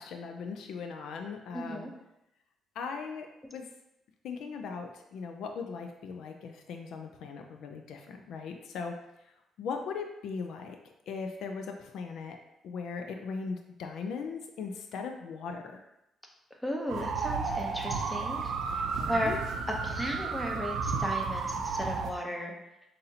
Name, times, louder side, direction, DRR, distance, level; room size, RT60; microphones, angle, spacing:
voice 1, 0.0-1.9 2.8-3.7 4.2-8.9 9.6-10.8 11.1-12.4 12.6-15.8 19.0-19.4, left 5 dB, 80° left, 4 dB, 0.4 m, -39 dB
voice 2, 1.5-1.9 16.6-18.4 18.7-19.3 19.8-22.5, equal, 10° left, 1 dB, 0.8 m, -35 dB
sound 1, 16.9-22.1, right 5 dB, 80° right, 0.5 m, -32 dB
5.6 x 2.6 x 2.7 m, 0.88 s
cardioid pair, 90°, 0 cm